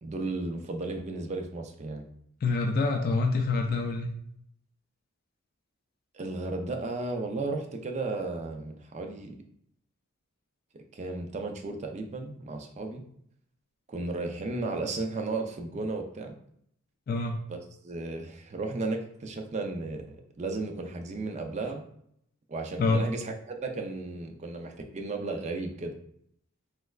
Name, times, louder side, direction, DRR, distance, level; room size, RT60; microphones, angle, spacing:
voice 1, 0.0-2.1 6.1-9.4 10.7-13.0 13.9-16.3 17.5-17.6 17.8-21.8 22.5-25.9, right 3 dB, 30° right, 4 dB, 0.4 m, -34 dB
voice 2, 2.4-4.1 17.1-17.4 22.8-23.1, left 3 dB, 45° left, 3 dB, 0.3 m, -26 dB
3.2 x 3.1 x 2.3 m, 0.70 s
head